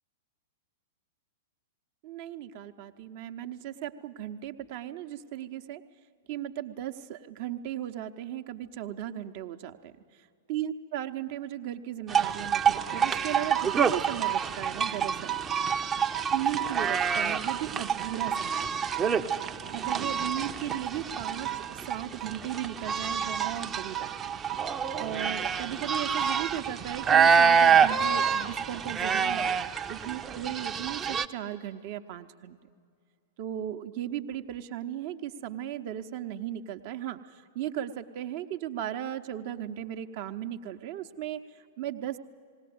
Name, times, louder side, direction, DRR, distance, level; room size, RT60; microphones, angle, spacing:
voice 1, 2.0-5.8 6.3-9.9 10.5-15.4 16.3-18.8 19.7-24.4 25.0-29.5 29.9-32.6 33.4-42.2, right 11 dB, 45° right, 8 dB, 0.9 m, -36 dB
sound 1, 12.1-31.3, right 7 dB, 20° right, 0.7 m, -27 dB
19.0 x 18.0 x 9.4 m, 2.3 s
figure-of-eight pair, 100°, 0 cm